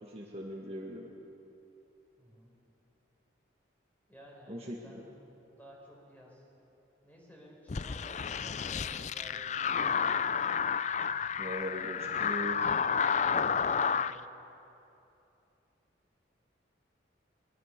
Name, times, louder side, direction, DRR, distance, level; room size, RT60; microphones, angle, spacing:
voice 1, 0.0-1.1 4.5-4.8 11.4-12.7, equal, 30° right, -2 dB, 1.7 m, -40 dB
voice 2, 2.2-2.6 4.1-5.1 5.6-6.5 7.0-10.3 13.6-14.3, equal, 10° left, -2 dB, 4.9 m, -54 dB
sound 1, 7.7-14.1, left 6 dB, 35° left, 0.4 m, -31 dB
22.0 x 21.5 x 6.7 m, 2.9 s
head